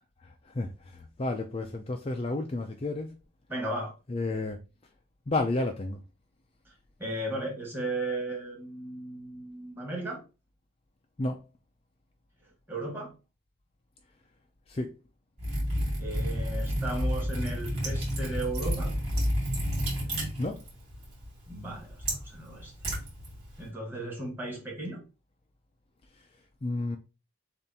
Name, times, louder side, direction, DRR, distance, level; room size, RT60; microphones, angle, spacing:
voice 1, 0.2-3.1 4.1-4.6 5.3-6.0 11.2-11.4 14.7-14.9 20.4-20.6 26.6-27.0, left 2 dB, 25° left, 0.4 m, -31 dB
voice 2, 3.5-3.9 6.6-6.7 7.0-10.2 12.7-13.1 16.0-18.9 21.5-22.7 23.6-25.0, right 2 dB, 10° right, 1.5 m, -35 dB
Liquid, 15.4-23.7, equal, 30° right, 2.9 m, -31 dB
6.8 x 2.6 x 2.8 m
head